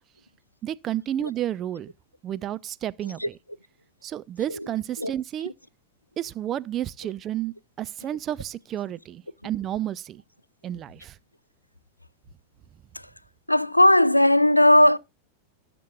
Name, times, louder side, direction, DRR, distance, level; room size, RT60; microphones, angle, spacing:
voice 1, 0.6-1.9 2.2-3.4 4.0-5.5 6.2-10.2 10.6-11.2, right 11 dB, 30° right, 0.4 m, -31 dB
voice 2, 13.5-15.0, left 1 dB, 85° left, 0.4 m, -17 dB
19.0 x 6.8 x 2.4 m
figure-of-eight pair, 90°, 0 cm